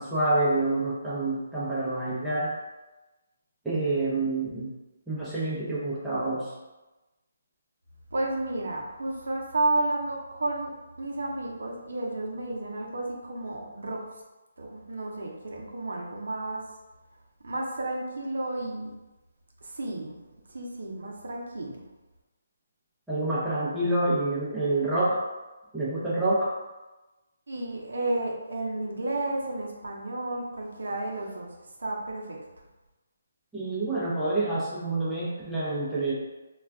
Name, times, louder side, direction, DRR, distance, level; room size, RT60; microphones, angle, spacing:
voice 1, 0.0-2.5 3.6-4.7 5.1-6.5 23.1-25.2 25.7-26.5 33.5-36.1, right 2 dB, 5° right, -10 dB, 0.6 m, -27 dB
voice 2, 8.1-14.0 14.6-16.6 17.4-18.9 19.6-20.1 20.5-21.8 27.5-31.5 31.8-32.4, right 2 dB, 75° right, -1 dB, 0.5 m, -32 dB
2.3 x 2.2 x 3.4 m, 1.1 s
hypercardioid pair, 155°, 0 cm